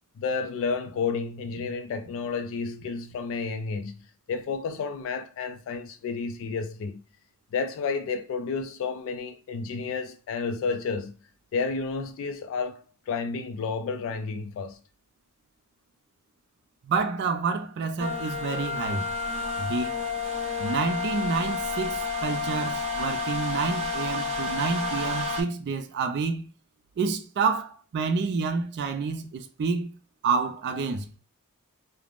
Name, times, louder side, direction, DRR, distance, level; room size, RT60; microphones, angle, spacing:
voice 1, 0.2-7.0 7.5-11.2 11.5-14.8, left 5 dB, 65° left, 0.3 m, -31 dB
voice 2, 16.8-19.1 19.6-19.9 20.6-26.5 27.0-29.9 30.2-31.1, right 4 dB, 50° right, 0.3 m, -28 dB
sound 1, 18.0-25.4, left 3 dB, 30° right, 0.8 m, -30 dB
3.3 x 2.0 x 2.3 m
head